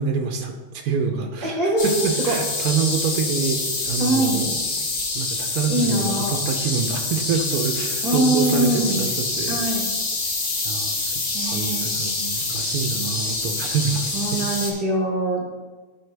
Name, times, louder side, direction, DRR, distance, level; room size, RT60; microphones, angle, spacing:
voice 1, 0.0-1.6 1.8-4.5 4.8-4.9 5.1-9.6 10.6-14.4, right 5 dB, 80° right, 4 dB, 1.2 m, -26 dB
voice 2, 1.4-2.3 4.0-4.5 5.7-6.4 8.0-9.0 9.5-9.9 11.3-11.9 14.1-15.4, right 1 dB, 30° right, -1 dB, 0.9 m, -23 dB
sound 1, 1.8-14.7, left 3 dB, 35° left, 0.8 m, -26 dB
11.5 x 3.9 x 3.3 m, 1.3 s
omnidirectional pair, 1.6 m